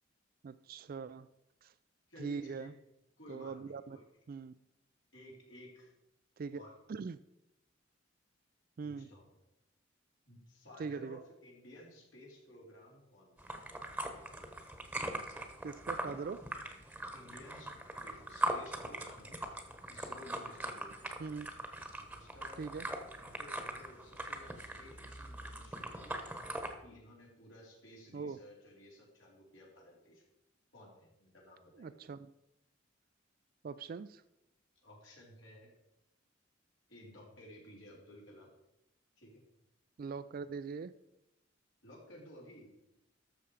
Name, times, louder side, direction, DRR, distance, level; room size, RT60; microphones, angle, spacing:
voice 1, 0.4-1.3 1.6-1.7 2.2-2.7 3.3-4.0 4.3-4.5 6.4-6.6 6.9-7.2 8.8-9.1 10.8-11.2 15.6-16.5 21.2-21.5 22.6-22.9 28.1-28.4 31.8-32.3 33.6-34.2 40.0-40.9, right 5 dB, 50° right, 14 dB, 0.3 m, -41 dB
voice 2, 2.1-2.7 3.2-4.0 5.1-5.9 6.5-6.7 8.8-9.4 10.3-13.6 17.1-17.7 18.0-19.5 19.9-21.1 22.1-22.6 23.2-30.2 30.7-32.0 34.8-35.7 36.9-38.5 39.2-39.4 41.8-42.7, equal, 75° left, -3 dB, 4.1 m, -55 dB
sound 1, 13.4-26.8, right 1 dB, 5° right, 1.1 m, -41 dB
12.5 x 6.9 x 4.9 m, 0.88 s
head